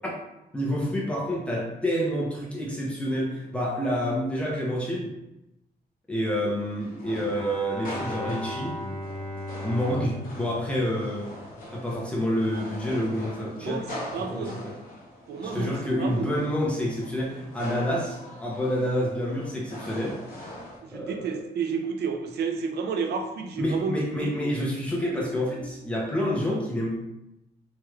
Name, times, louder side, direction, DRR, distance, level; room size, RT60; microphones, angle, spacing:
voice 1, 0.5-5.1 6.1-8.8 9.6-11.3 11.7-13.8 14.2-14.7 15.4-20.2 20.9-21.3 23.6-26.9, equal, 5° left, -4 dB, 0.7 m, -28 dB
sound 1, 6.2-20.8, left 1 dB, 60° left, 0.9 m, -42 dB
Bowed string instrument, 7.3-11.7, left 1 dB, 35° left, 1.2 m, -37 dB
voice 2, 13.6-14.6 15.3-16.3 20.8-24.3 25.0-25.3, right 5 dB, 85° right, 4 dB, 0.4 m, -31 dB
3.1 x 3.1 x 2.3 m, 0.91 s
wide cardioid pair, 170°, 16 cm